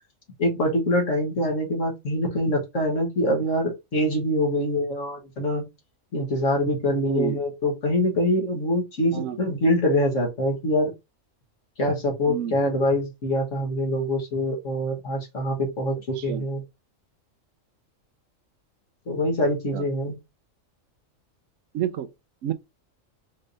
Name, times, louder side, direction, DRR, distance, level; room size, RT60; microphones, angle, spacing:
voice 1, 0.4-5.6 6.1-10.9 11.8-16.6 19.1-20.1, left 1 dB, 70° left, 1.9 m, -24 dB
voice 2, 7.0-7.4 9.1-9.4 12.3-12.5 16.2-16.4 19.7-19.8 21.7-22.1 22.4-22.5, right 10 dB, 75° right, 0.9 m, -29 dB
5.3 x 3.3 x 2.7 m
omnidirectional pair, 1.4 m